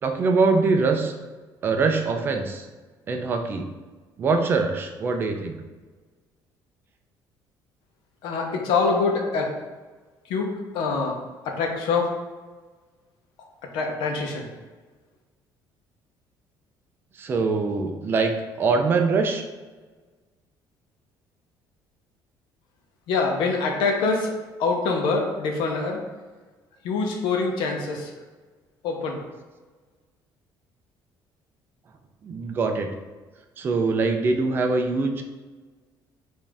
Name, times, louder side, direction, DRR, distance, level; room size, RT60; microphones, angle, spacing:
voice 1, 0.0-1.1 1.6-2.7 3.1-3.7 4.2-5.6 17.2-19.4 32.2-32.9 33.6-35.2, right 4 dB, 25° right, 4 dB, 0.4 m, -23 dB
voice 2, 8.2-9.5 10.2-11.2 11.4-12.1 13.7-14.5 23.1-24.3 24.6-26.0 26.8-28.1 28.8-29.2, left 4 dB, 85° left, 2 dB, 0.8 m, -25 dB
5.1 x 2.6 x 3.5 m, 1.3 s
cardioid pair, 175°, 8 cm